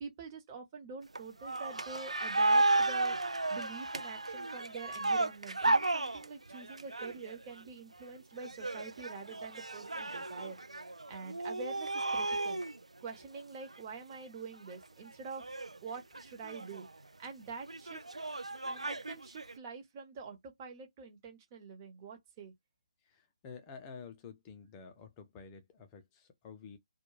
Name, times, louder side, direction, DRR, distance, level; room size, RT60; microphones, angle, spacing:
voice 1, 0.0-10.6 11.1-12.6 13.0-15.5 15.8-16.9 17.2-18.0 18.7-22.5, right 5 dB, 25° right, 0.8 m, -46 dB
sound 1, 1.2-7.6 8.4-12.8 13.4-13.5 13.7-13.8 14.5-14.8 15.3-16.9 17.7-19.6, right 2 dB, 85° right, 0.4 m, -33 dB
voice 2, 23.1-26.8, left 5 dB, 20° left, 0.5 m, -50 dB
2.2 x 2.1 x 3.1 m
figure-of-eight pair, 150°, 3 cm